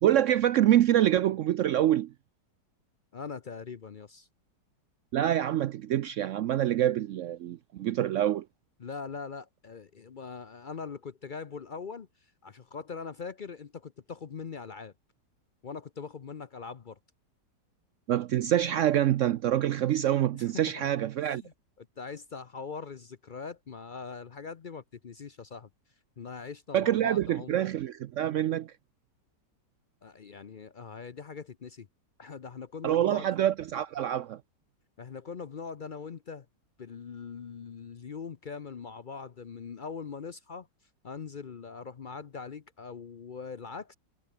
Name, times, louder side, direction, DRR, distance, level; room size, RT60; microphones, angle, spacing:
voice 1, 0.0-2.1 5.1-8.4 18.1-21.4 26.7-28.7 32.8-34.4, right 11 dB, 90° right, 0.6 m, -26 dB
voice 2, 3.1-4.3 8.8-14.9 15.6-17.0 20.3-25.7 26.2-27.6 30.0-31.9 32.2-33.3 35.0-36.5 36.8-40.7 41.0-43.9, left 5 dB, 60° left, 0.5 m, -42 dB
omnidirectional pair, 1.9 m